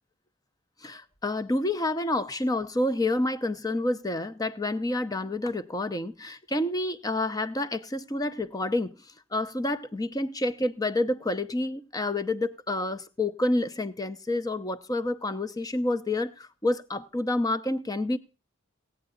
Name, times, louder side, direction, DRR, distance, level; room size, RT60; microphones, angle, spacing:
voice 1, 0.8-8.9 9.3-18.2, left 2 dB, 20° left, 0.7 m, -28 dB
16.5 x 8.8 x 3.9 m
head